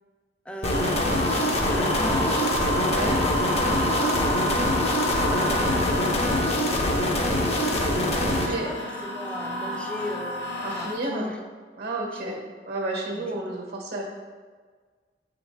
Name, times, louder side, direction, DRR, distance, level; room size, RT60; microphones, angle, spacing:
voice 1, 0.5-3.0 3.6-4.8 5.3-11.4 12.2-12.4 13.1-13.3, left 1 dB, 5° left, 2 dB, 0.5 m, -38 dB
sound 1, 0.6-8.5, left 1 dB, 35° left, 0.7 m, -24 dB
sound 2, 0.7-10.9, equal, 70° left, 1.3 m, -29 dB
voice 2, 2.7-3.3 8.4-8.7 10.6-11.3 11.8-12.4 12.7-14.0, right 2 dB, 65° right, -1 dB, 1.2 m, -31 dB
7.6 x 3.9 x 3.5 m, 1.5 s
head